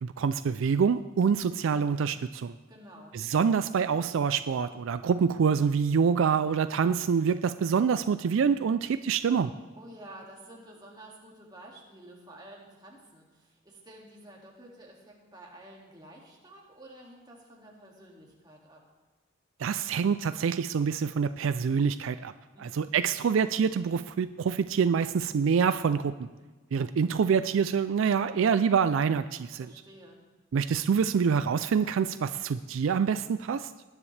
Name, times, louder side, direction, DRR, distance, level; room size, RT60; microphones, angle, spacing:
voice 1, 0.0-2.5 3.1-9.5 19.6-22.3 22.6-26.1 26.7-29.7 30.5-33.7, right 6 dB, 75° right, 12 dB, 0.4 m, -26 dB
voice 2, 2.7-3.2 9.8-18.8 22.5-22.9 29.6-30.2, right 1 dB, 20° right, -2 dB, 2.2 m, -50 dB
19.5 x 9.8 x 3.3 m, 1.3 s
head